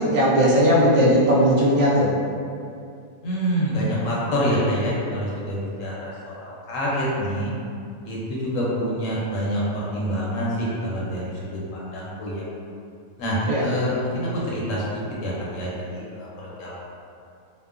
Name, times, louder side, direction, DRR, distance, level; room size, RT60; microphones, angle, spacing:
voice 1, 0.0-2.1 13.5-13.6, equal, 70° right, -6 dB, 0.9 m, -18 dB
voice 2, 3.2-7.5 8.0-12.4 13.2-16.8, equal, 70° left, -6 dB, 1.0 m, -26 dB
2.9 x 2.1 x 2.3 m, 2.4 s
omnidirectional pair, 1.5 m